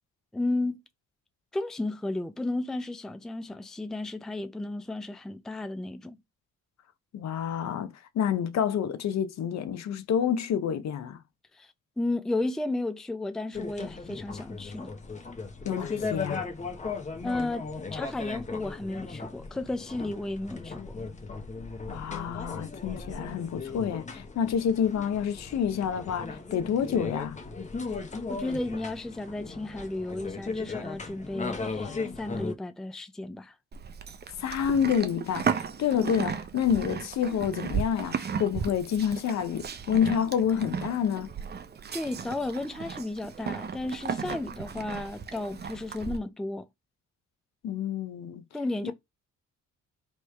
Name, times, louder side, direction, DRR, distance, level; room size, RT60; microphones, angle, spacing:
voice 1, 0.3-0.8 1.5-6.2 11.5-11.7 12.0-14.9 17.2-20.9 28.3-33.5 35.9-36.1 41.9-46.7 48.5-48.9, left 2 dB, ahead, 0.4 m, -33 dB
voice 2, 7.1-11.2 15.6-16.5 21.9-27.4 34.4-41.3 47.6-48.4, left 8 dB, 60° left, 0.7 m, -28 dB
sound 1, 13.5-32.5, left 4 dB, 25° left, 0.9 m, -37 dB
Livestock farm animals working animals, 33.7-46.2, right 6 dB, 35° right, 0.7 m, -35 dB
3.2 x 3.1 x 4.5 m
cardioid pair, 90°, 30 cm